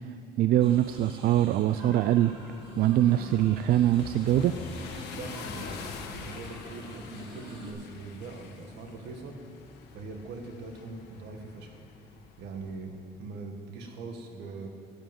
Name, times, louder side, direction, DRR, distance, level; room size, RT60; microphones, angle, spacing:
voice 1, 0.4-2.3 2.8-4.5, right 13 dB, 65° right, 11 dB, 0.4 m, -23 dB
sound 1, 0.6-7.7, right 1 dB, 35° right, 3.4 m, -48 dB
sound 2, 0.7-12.9, left 5 dB, 80° left, 1.4 m, -45 dB
voice 2, 5.1-9.4 9.9-11.8 12.4-12.9 13.2-14.7, right 3 dB, 80° right, 3 dB, 1.8 m, -41 dB
13.0 x 9.1 x 7.6 m, 2.8 s
cardioid pair, 110°, 17 cm